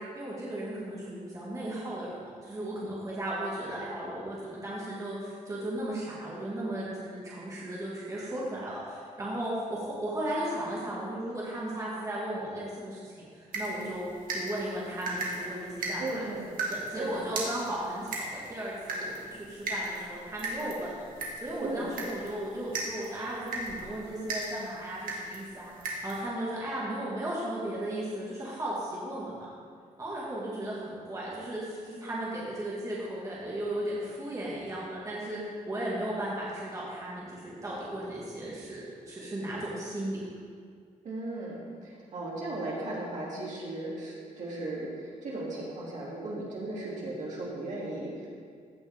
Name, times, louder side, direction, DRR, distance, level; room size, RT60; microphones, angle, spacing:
voice 1, 0.0-14.1 14.3-16.2 16.7-21.0 21.4-25.7 26.0-29.5 30.0-40.2, right 1 dB, 25° right, -7 dB, 1.9 m, -35 dB
sound 1, 13.5-26.2, right 2 dB, 80° right, 1.9 m, -38 dB
voice 2, 16.0-16.5 16.9-17.2 21.6-21.9 41.0-48.3, right 2 dB, 60° right, -6 dB, 2.8 m, -36 dB
15.5 x 6.2 x 3.6 m, 2.1 s
wide cardioid pair, 140°, 14 cm